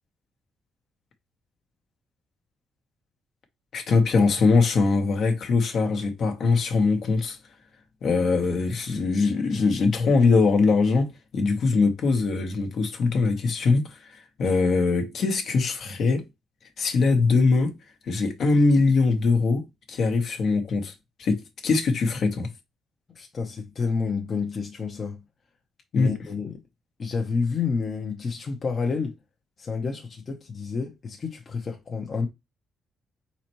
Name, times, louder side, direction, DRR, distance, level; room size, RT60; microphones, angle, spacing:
voice 1, 3.7-7.4 8.0-14.0 14.4-16.2 16.8-17.7 18.1-20.9 21.2-22.5 25.9-26.1, left 4 dB, 65° left, 1.1 m, -22 dB
voice 2, 23.1-25.2 25.9-26.6 27.0-29.2 29.6-32.3, left 5 dB, 45° left, 0.8 m, -29 dB
4.2 x 4.0 x 3.0 m
cardioid pair, 90°, 0 cm